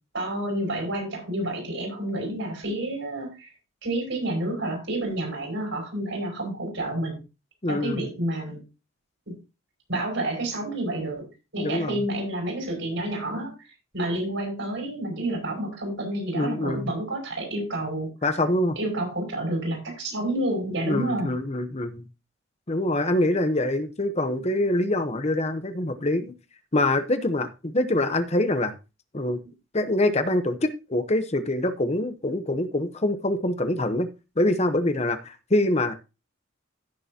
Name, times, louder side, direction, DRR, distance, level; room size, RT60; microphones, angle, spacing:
voice 1, 0.1-3.5 3.8-7.2 7.7-8.6 9.3-9.4 9.9-18.1 18.8-21.3, right 1 dB, 65° right, 6.2 m, -29 dB
voice 2, 7.6-8.1 11.6-12.0 16.3-16.9 18.2-18.8 20.9-22.0 22.7-26.3 26.7-28.8 29.1-29.4 29.7-34.1 34.4-36.0, left 1 dB, 30° left, 0.9 m, -25 dB
15.5 x 6.8 x 2.8 m
head